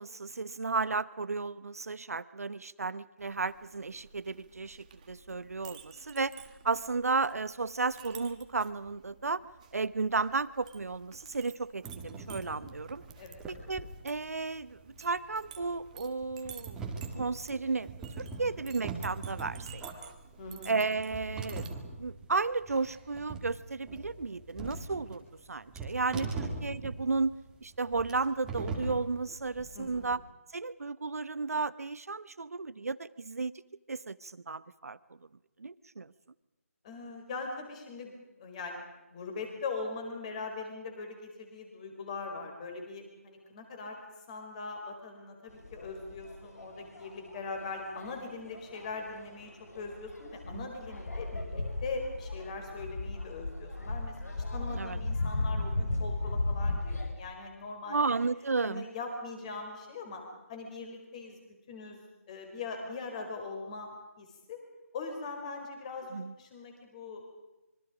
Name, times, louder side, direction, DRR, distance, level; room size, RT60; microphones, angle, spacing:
voice 1, 0.0-6.3 6.6-9.4 9.7-13.0 13.5-16.8 17.1-17.9 18.2-20.1 20.7-21.6 22.0-27.3 27.6-30.2 30.5-33.5 33.9-35.0 35.6-36.1 50.5-50.7 54.7-55.0 57.9-58.8 66.1-66.3, right 4 dB, 70° right, 17 dB, 1.0 m, -33 dB
Chink clink, 3.2-21.7, right 7 dB, 25° right, 1.6 m, -53 dB
sound 1, 11.8-30.2, right 3 dB, 5° right, 2.4 m, -42 dB
voice 2, 18.3-18.6 20.4-20.7 26.3-26.5 29.7-30.1 36.8-38.8 39.1-44.0 44.3-54.1 54.5-58.0 58.6-60.2 60.5-61.4 61.7-64.6 64.9-67.3, left 4 dB, 25° left, 4 dB, 4.8 m, -41 dB
sound 2, 45.5-57.1, left 2 dB, 80° left, 5.0 m, -36 dB
26.0 x 24.0 x 5.2 m, 1.0 s
figure-of-eight pair, 160°, 8 cm